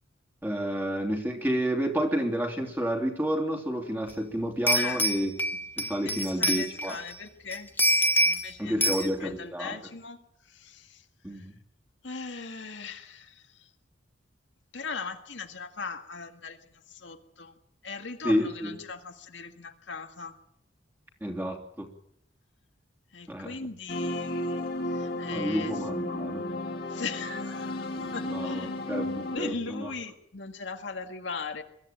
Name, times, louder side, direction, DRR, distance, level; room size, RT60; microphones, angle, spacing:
voice 1, 0.4-5.3 5.8-7.0 8.6-9.8 11.2-11.5 18.2-18.8 21.2-21.9 23.3-23.5 25.3-26.4 28.0-29.9, equal, 10° right, 2 dB, 3.0 m, -30 dB
sound 1, 4.1-4.2 4.7-7.1 7.5-8.5 8.8-9.1, equal, 10° left, 1.2 m, -25 dB
voice 2, 6.0-7.7 8.3-10.2 10.5-11.0 11.3-11.5 12.0-13.5 14.7-17.5 17.8-20.4 23.1-25.7 26.9-28.8 29.3-31.6, left 4 dB, 70° left, 5 dB, 1.8 m, -39 dB
sound 2, 23.9-29.4, left 1 dB, 50° left, 2.5 m, -33 dB
23.0 x 14.0 x 9.1 m, 0.74 s
head